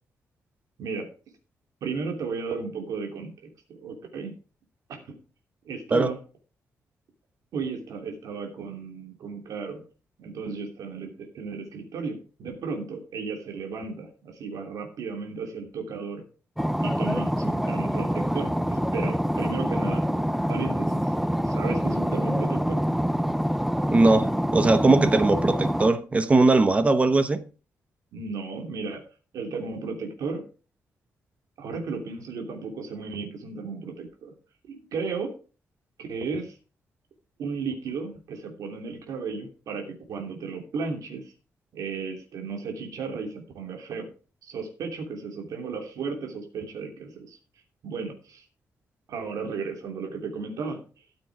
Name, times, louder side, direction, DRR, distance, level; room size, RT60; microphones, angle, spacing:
voice 1, 1.8-3.3 3.7-4.3 4.9-5.2 5.7-6.2 7.5-9.8 10.2-16.2 16.8-20.0 20.5-21.1 21.4-22.8 28.1-29.0 29.3-30.4 31.6-34.3 34.7-35.3 36.0-36.6 37.4-41.3 41.7-44.1 44.4-47.4 47.8-48.4 49.1-50.8, right 5 dB, 80° right, 2.9 m, -34 dB
sound 1, 16.6-25.9, equal, 5° right, 0.5 m, -26 dB
voice 2, 23.9-27.4, right 3 dB, 25° right, 0.9 m, -20 dB
13.5 x 6.8 x 4.7 m
wide cardioid pair, 160°, 6 cm